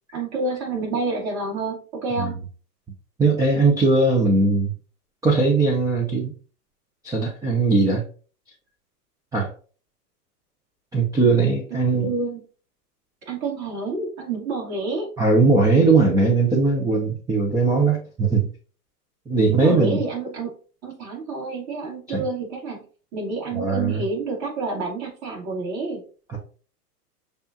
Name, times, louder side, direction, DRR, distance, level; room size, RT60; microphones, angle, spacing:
voice 1, 0.1-2.4 12.0-12.4 13.3-15.1 19.5-20.6 20.8-22.8 23.1-26.0, right 3 dB, 35° right, -3 dB, 2.4 m, -28 dB
voice 2, 3.2-4.7 5.2-6.3 7.0-8.0 9.3-9.5 10.9-12.1 15.2-18.5 19.3-20.0 22.1-22.2 23.5-24.0 26.3-26.4, right 3 dB, 10° right, 0 dB, 0.6 m, -19 dB
6.7 x 2.5 x 2.8 m, 0.39 s
hypercardioid pair, 110°, 48 cm